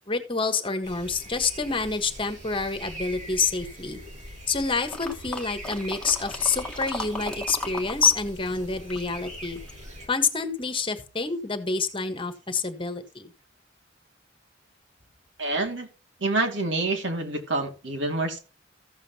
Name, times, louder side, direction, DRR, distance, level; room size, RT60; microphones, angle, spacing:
voice 1, 0.1-4.0 4.5-9.6 10.1-13.3, left 4 dB, 30° left, 8 dB, 1.5 m, -27 dB
sound 1, 0.8-10.1, equal, 40° right, 4.8 m, -42 dB
sound 2, 4.9-8.2 8.4-9.9 10.4-10.5, left 2 dB, 5° left, 1.6 m, -36 dB
voice 2, 15.4-15.9 16.2-18.4, right 2 dB, 80° right, 4 dB, 2.7 m, -27 dB
14.5 x 7.7 x 3.0 m, 0.33 s
head